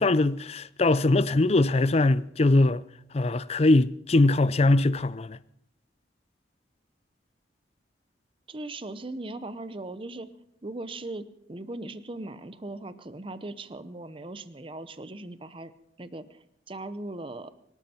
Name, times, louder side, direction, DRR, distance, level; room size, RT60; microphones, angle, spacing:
voice 1, 0.0-2.8 3.1-5.4, left 2 dB, 35° left, 0.5 m, -22 dB
voice 2, 8.5-10.3 10.6-15.7 16.0-17.5, right 2 dB, 30° right, 0.8 m, -39 dB
24.0 x 13.0 x 4.4 m
head